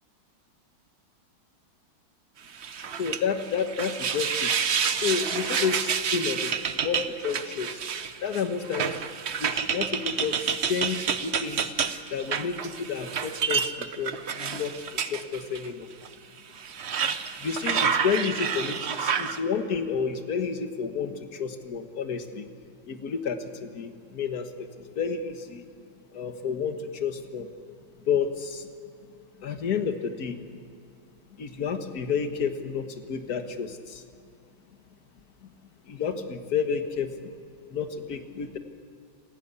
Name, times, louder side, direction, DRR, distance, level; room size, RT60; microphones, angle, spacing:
sound 1, 2.5-15.7 16.0-16.1 16.6-19.4, right 7 dB, 60° right, 0.6 m, -29 dB
voice 1, 2.9-4.5 4.9-9.0 9.4-11.7 12.1-14.7 15.0-15.9 17.4-22.5 22.9-25.6 26.1-27.5 28.1-28.7 29.4-30.4 31.3-34.0 35.4-35.5 35.9-37.3 37.7-38.6, left 6 dB, 50° left, 7 dB, 1.8 m, -30 dB
27.5 x 15.5 x 8.2 m, 2.3 s
omnidirectional pair, 2.3 m